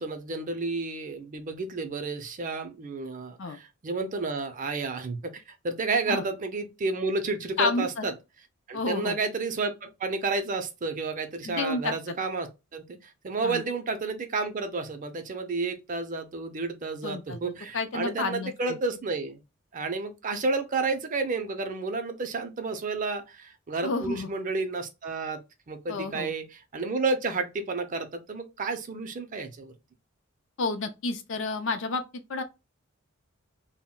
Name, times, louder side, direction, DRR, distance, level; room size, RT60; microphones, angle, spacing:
voice 1, 0.0-8.1 8.7-19.4 19.7-25.4 25.7-29.7, right 3 dB, 40° right, 0.5 m, -31 dB
voice 2, 7.6-8.1 8.7-9.2 11.4-12.1 13.4-13.6 17.0-17.4 17.7-18.8 23.8-24.3 25.9-26.3 30.6-32.4, left 3 dB, 65° left, 0.4 m, -30 dB
2.2 x 2.1 x 3.7 m
head